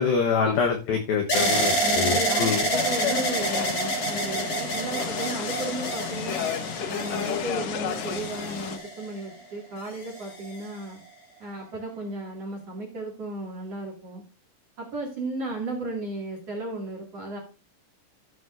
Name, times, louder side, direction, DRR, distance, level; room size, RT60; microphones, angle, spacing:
voice 1, 0.0-2.6, left 6 dB, 90° left, 3 dB, 2.0 m, -25 dB
sound 1, 1.3-9.3 10.0-10.7, right 1 dB, 35° left, 3.9 m, -28 dB
voice 2, 1.3-6.4 6.9-11.0 11.4-14.2 14.8-17.4, right 2 dB, 50° right, -2 dB, 2.0 m, -34 dB
sound 2, 2.7-8.8, left 9 dB, 70° left, 2.9 m, -32 dB
14.0 x 7.8 x 2.5 m, 0.32 s
omnidirectional pair, 5.9 m